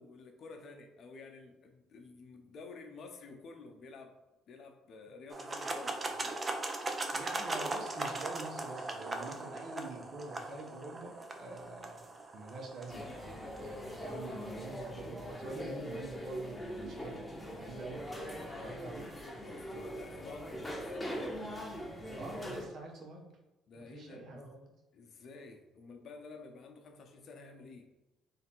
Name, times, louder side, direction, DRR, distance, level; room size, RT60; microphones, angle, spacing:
voice 1, 0.0-4.2 4.5-6.4 18.4-18.8 19.4-21.1 23.7-24.4 24.9-27.9, left 3 dB, 55° left, 4 dB, 0.8 m, -51 dB
sound 1, 5.3-14.4, right 2 dB, 30° right, 0.6 m, -40 dB
voice 2, 7.1-12.0 12.3-13.1 13.6-17.2 17.5-18.1 18.6-19.1 22.0-23.3 23.9-24.7, right 3 dB, 60° right, 1 dB, 1.1 m, -46 dB
sound 2, 12.9-22.7, equal, 15° left, 1.1 m, -42 dB
3.4 x 2.8 x 4.5 m, 1.0 s
supercardioid pair, 75°, 0 cm